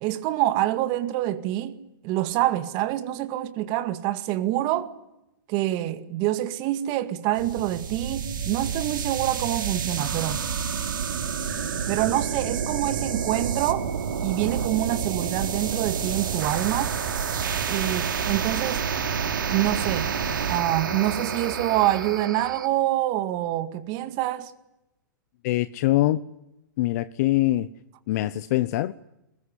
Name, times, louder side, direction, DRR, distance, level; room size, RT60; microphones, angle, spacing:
voice 1, 0.0-1.8 2.0-4.9 5.5-10.5 11.9-13.9 14.2-16.9 17.7-18.8 19.5-20.1 20.5-24.5, right 14 dB, 40° right, 2.1 m, -26 dB
sound 1, 7.3-22.7, right 7 dB, 80° right, 3.0 m, -29 dB
voice 2, 25.4-26.2 26.8-27.7 28.1-28.9, left 16 dB, 55° left, 0.8 m, -23 dB
22.5 x 20.0 x 10.0 m
hypercardioid pair, 125°, 11 cm